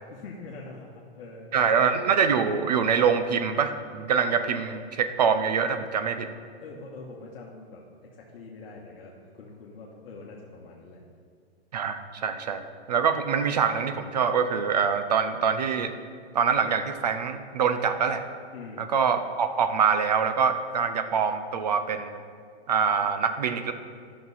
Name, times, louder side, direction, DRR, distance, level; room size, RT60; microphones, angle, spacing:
voice 1, 0.1-1.8 6.6-11.0 18.5-18.9, left 3 dB, 60° left, -3 dB, 1.3 m, -44 dB
voice 2, 1.5-6.3 11.7-12.6 12.9-15.9 16.3-18.2 18.8-22.2 22.7-23.7, right 6 dB, 40° right, 9 dB, 0.4 m, -24 dB
11.5 x 6.0 x 4.1 m, 2.1 s
hypercardioid pair, 175°, 33 cm